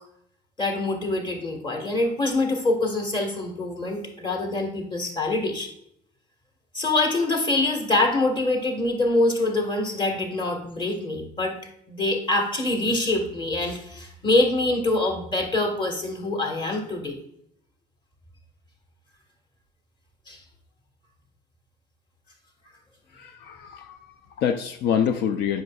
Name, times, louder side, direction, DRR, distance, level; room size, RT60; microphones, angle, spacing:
voice 1, 0.6-5.7 6.7-11.5 11.9-17.2 20.3-20.4, left 2 dB, 25° left, 2 dB, 1.5 m, -25 dB
voice 2, 23.1-25.6, left 8 dB, 80° left, 6 dB, 0.5 m, -26 dB
7.7 x 5.8 x 2.3 m, 0.74 s
cardioid pair, 110°, 17 cm